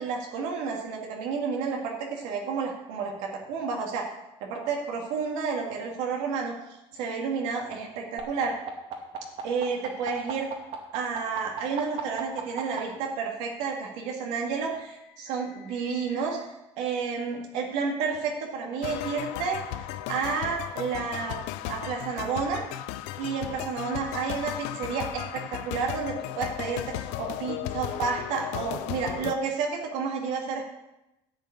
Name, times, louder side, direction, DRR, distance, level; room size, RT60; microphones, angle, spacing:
voice 1, 0.0-4.1 4.4-6.5 6.9-8.6 9.4-10.5 10.9-16.4 16.8-22.6 23.2-30.6, right 5 dB, 85° right, 0 dB, 2.2 m, -31 dB
sound 1, 8.2-12.8 13.9-16.2, right 11 dB, 55° right, 2.3 m, -38 dB
sound 2, 18.8-29.4, left 14 dB, 85° left, 0.6 m, -35 dB
11.0 x 5.5 x 8.6 m, 0.94 s
cardioid pair, 135°, 12 cm